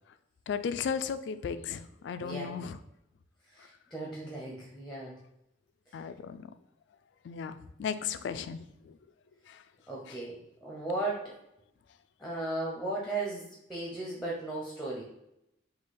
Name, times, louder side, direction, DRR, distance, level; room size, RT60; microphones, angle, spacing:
voice 1, 0.5-2.8 5.9-6.5 7.2-9.0 9.5-9.6, left 6 dB, 70° left, 12 dB, 0.3 m, -35 dB
voice 2, 2.2-2.5 3.5-5.1 9.9-11.3 12.2-13.4 13.7-15.0, right 2 dB, ahead, -3 dB, 0.7 m, -36 dB
3.8 x 2.8 x 4.1 m, 0.84 s
head